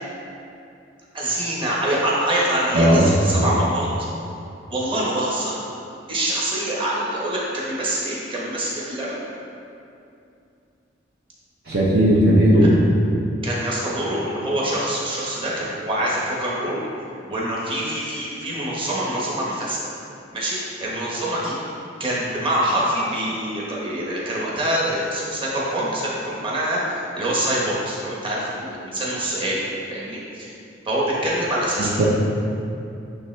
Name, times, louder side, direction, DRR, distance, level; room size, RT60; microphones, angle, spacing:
voice 1, 1.1-3.9 4.7-5.6 6.1-9.2 13.4-16.8 17.3-19.8 20.3-21.6 22.0-29.6 29.9-30.5 30.8-32.1, right 1 dB, 30° right, -6 dB, 1.2 m, -25 dB
voice 2, 2.7-3.6 11.7-12.8 31.8-32.1, equal, 60° right, -6 dB, 0.7 m, -16 dB
9.3 x 3.3 x 3.3 m, 2.6 s
head